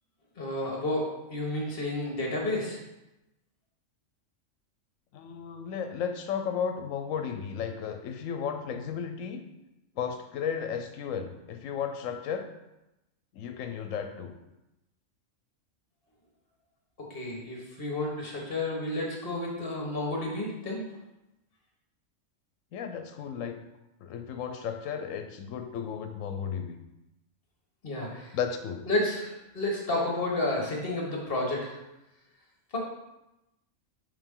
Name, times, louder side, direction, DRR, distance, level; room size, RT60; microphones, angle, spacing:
voice 1, 0.4-2.8 17.1-20.8 27.8-28.4 28.9-31.8 32.7-32.8, left 1 dB, 45° left, -2 dB, 1.5 m, -31 dB
voice 2, 5.1-9.4 10.0-12.5 13.3-14.3 22.7-23.6 24.0-26.8 28.3-28.8, left 7 dB, 80° left, 7 dB, 1.0 m, -34 dB
5.1 x 4.9 x 3.7 m, 0.94 s
omnidirectional pair, 1.4 m